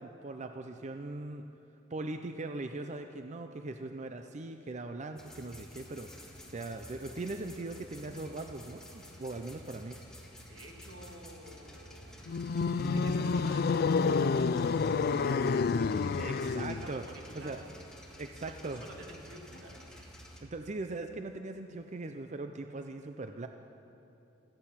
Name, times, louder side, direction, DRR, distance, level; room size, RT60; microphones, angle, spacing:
voice 1, 0.0-1.4 1.9-10.0 16.2-17.0 17.3-17.6 18.2-18.8 20.4-23.5, right 2 dB, 40° right, 6 dB, 0.5 m, -40 dB
sound 1, 5.2-20.4, equal, 5° left, 1.8 m, -51 dB
voice 2, 10.5-12.2 12.7-16.5 16.8-17.7 18.5-20.0, right 1 dB, 85° right, 0 dB, 2.5 m, -50 dB
sound 2, 12.3-16.9, left 4 dB, 55° left, 0.4 m, -29 dB
16.5 x 14.0 x 5.8 m, 2.8 s
head